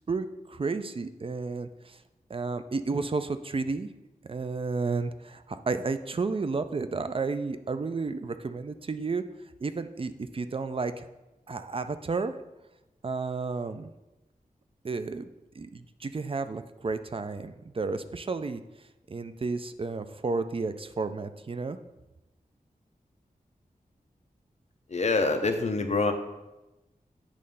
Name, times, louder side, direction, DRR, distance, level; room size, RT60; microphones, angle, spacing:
voice 1, 0.1-2.0 2.3-3.9 4.2-9.2 9.6-11.1 11.5-12.3 13.0-13.9 14.8-15.3 15.6-18.6 19.1-21.8, right 4 dB, 35° right, 10 dB, 0.4 m, -32 dB
voice 2, 24.9-26.1, left 3 dB, 45° left, 5 dB, 0.8 m, -25 dB
8.7 x 3.2 x 5.4 m, 1.0 s
wide cardioid pair, 90°, 15 cm